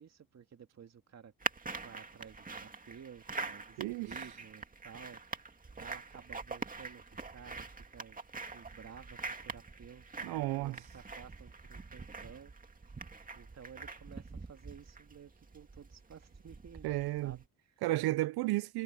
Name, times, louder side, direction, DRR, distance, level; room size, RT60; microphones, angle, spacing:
voice 1, 0.0-1.3 1.8-5.4 5.8-7.0 7.3-8.2 8.5-12.5 12.8-13.0 13.3-16.9 17.2-17.7, right 7 dB, 45° right, 2.2 m, -54 dB
sound 1, 1.4-17.5, right 3 dB, 20° right, 2.2 m, -44 dB
voice 2, 3.8-4.1 10.2-10.8 16.8-17.4 17.8-18.8, right 18 dB, 80° right, 0.5 m, -33 dB
cardioid pair, 110°, 37 cm